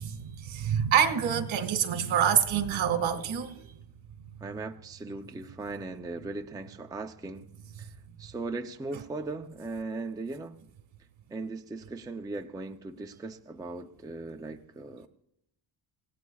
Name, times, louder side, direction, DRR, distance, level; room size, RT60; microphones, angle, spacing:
voice 1, 0.2-3.7, right 8 dB, 70° right, 1.9 m, -26 dB
voice 2, 4.4-7.5 7.8-7.9 8.2-10.6 11.3-15.1, right 3 dB, 10° right, 0.5 m, -38 dB
29.5 x 17.0 x 2.4 m
cardioid pair, 170°, 47 cm